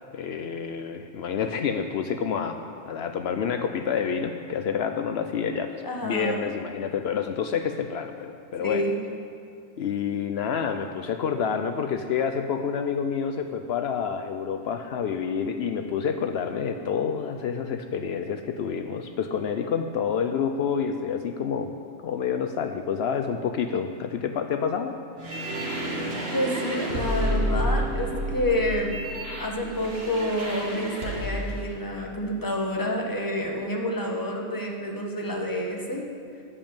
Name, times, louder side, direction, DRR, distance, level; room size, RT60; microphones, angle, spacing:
voice 1, 0.1-2.5 2.9-8.9 9.8-21.7 22.0-24.9, left 7 dB, 75° left, 7 dB, 0.8 m, -28 dB
voice 2, 5.8-6.5 8.6-9.0 26.3-29.0 29.4-36.1, equal, 20° left, 0 dB, 1.3 m, -28 dB
sound 1, 25.2-31.6, equal, 65° right, 1.6 m, -30 dB
14.0 x 5.3 x 8.8 m, 2.3 s
omnidirectional pair, 1.1 m